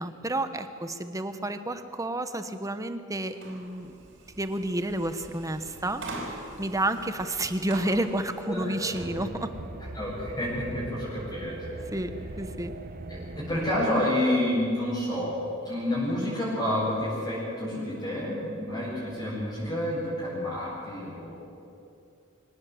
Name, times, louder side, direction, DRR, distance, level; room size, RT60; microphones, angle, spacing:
voice 1, 0.0-4.0 4.4-9.5 11.9-12.7, right 1 dB, 15° right, 9 dB, 1.1 m, -30 dB
sound 1, 3.3-9.1, right 2 dB, 65° right, 4.8 m, -43 dB
voice 2, 8.4-8.7 9.9-11.6 13.1-15.3 15.6-21.5, left 1 dB, 20° left, -8 dB, 7.6 m, -29 dB
sound 2, 8.9-13.9, right 1 dB, 45° right, 1.2 m, -40 dB
24.0 x 18.5 x 7.8 m, 2.5 s
head